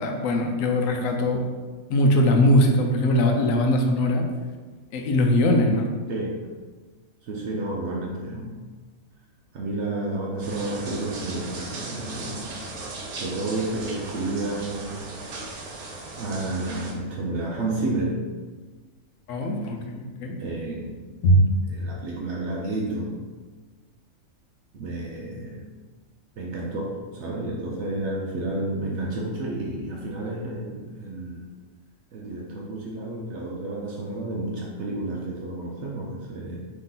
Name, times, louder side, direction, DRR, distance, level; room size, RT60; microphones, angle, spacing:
voice 1, 0.0-1.5 1.9-4.3 4.9-5.9 19.3-20.4 21.2-21.5, left 1 dB, 70° left, 3 dB, 1.0 m, -21 dB
voice 2, 6.1-6.5 7.2-8.6 9.5-12.5 13.1-15.0 16.2-18.2 20.4-21.0 21.7-23.2 24.7-25.7 26.4-31.5 32.1-36.6, right 2 dB, 65° right, -2 dB, 0.8 m, -31 dB
sound 1, 10.4-16.9, right 3 dB, 90° right, 1.2 m, -37 dB
3.9 x 3.1 x 3.8 m, 1.4 s
omnidirectional pair, 1.5 m